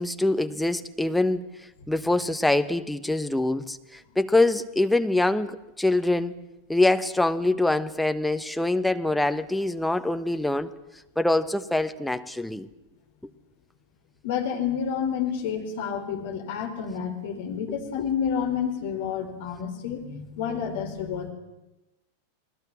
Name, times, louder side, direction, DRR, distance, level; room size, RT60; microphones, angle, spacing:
voice 1, 0.0-1.4 1.9-6.3 6.7-10.7 11.2-12.7, left 2 dB, 5° left, 9 dB, 1.1 m, -24 dB
voice 2, 14.2-21.3, left 7 dB, 50° left, 5 dB, 4.3 m, -29 dB
28.5 x 20.0 x 7.5 m, 0.94 s
figure-of-eight pair, 90°, 0 cm